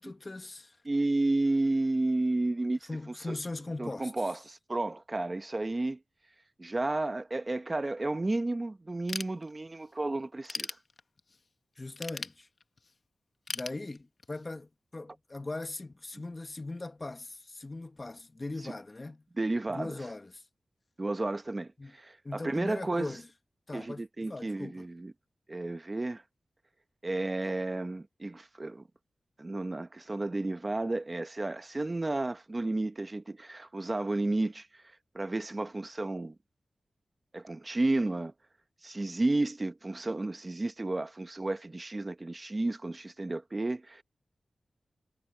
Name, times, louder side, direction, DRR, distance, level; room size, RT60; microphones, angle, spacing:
voice 1, 0.0-0.8 2.9-4.3 11.8-12.5 13.5-19.2 19.7-20.4 21.8-21.9 22.2-23.3 23.7-24.9, left 2 dB, 30° left, 1.1 m, -40 dB
voice 2, 0.8-2.9 3.3-3.4 3.8-6.0 6.6-10.8 19.4-20.0 21.0-23.1 23.7-25.1 25.5-26.2 27.0-28.8 29.4-34.7 35.1-36.3 37.3-38.3 38.8-44.0, right 2 dB, 30° right, 1.0 m, -32 dB
Ratchet pawl / Tools, 9.1-9.9 10.3-11.4 12.0-12.9 13.5-14.5, left 4 dB, 55° left, 1.1 m, -39 dB
wide cardioid pair, 75°, 0 cm